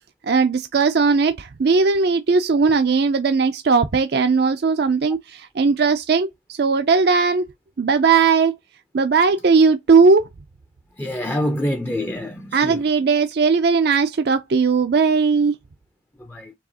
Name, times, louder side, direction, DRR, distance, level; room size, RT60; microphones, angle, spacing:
voice 1, 0.2-7.4 7.8-8.5 8.9-10.3 12.5-15.6, right 4 dB, 55° right, 0.4 m, -18 dB
voice 2, 11.0-12.8 16.2-16.5, left 1 dB, 10° left, 0.5 m, -26 dB
4.6 x 3.3 x 2.8 m
head